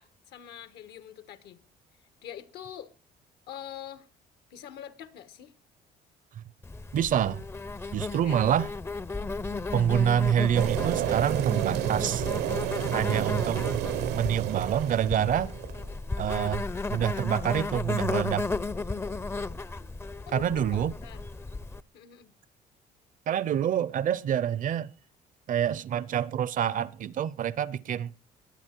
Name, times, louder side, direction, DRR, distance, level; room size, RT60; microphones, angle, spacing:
voice 1, 0.0-1.6 2.2-2.9 3.5-4.1 4.5-5.5 8.2-8.4 19.0-19.3 19.7-19.9 20.2-21.2 21.9-22.3, left 10 dB, 80° left, 1.4 m, -45 dB
Insect, 6.6-21.8, left 3 dB, 15° left, 0.5 m, -34 dB
voice 2, 6.9-7.4 7.9-8.7 9.7-12.3 12.9-13.6 14.1-15.5 16.2-16.6 16.9-18.5 20.3-20.9 23.3-24.9 25.5-28.1, right 9 dB, 50° right, 0.7 m, -26 dB
sound 1, 10.5-15.9, right 12 dB, 75° right, 0.9 m, -30 dB
21.0 x 8.8 x 4.5 m
cardioid pair, 110°, 17 cm